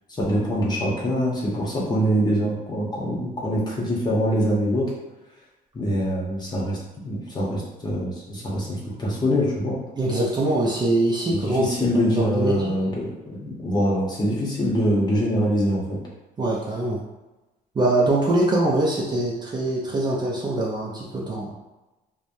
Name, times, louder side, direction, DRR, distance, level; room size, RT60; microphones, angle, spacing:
voice 1, 0.2-4.9 5.7-6.8 7.0-9.8 11.3-16.0, equal, 25° left, -4 dB, 0.9 m, -24 dB
voice 2, 10.0-11.7 12.1-12.8 16.4-17.0 17.8-21.5, right 2 dB, 25° right, -3 dB, 0.4 m, -23 dB
3.1 x 2.1 x 2.5 m, 1.1 s
cardioid pair, 110°, 17 cm